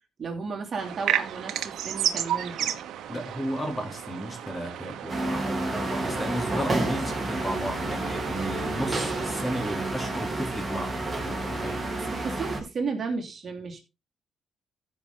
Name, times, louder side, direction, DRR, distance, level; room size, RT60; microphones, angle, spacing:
voice 1, 0.2-2.8 12.0-13.8, right 4 dB, 45° right, 2.8 m, -33 dB
sound 1, 0.8-9.7, right 11 dB, 75° right, 1.1 m, -33 dB
voice 2, 3.1-11.8, equal, 15° left, 3.5 m, -34 dB
sound 2, 5.1-12.6, right 2 dB, 20° right, 3.5 m, -30 dB
14.5 x 5.8 x 3.9 m
cardioid pair, 90°, 0 cm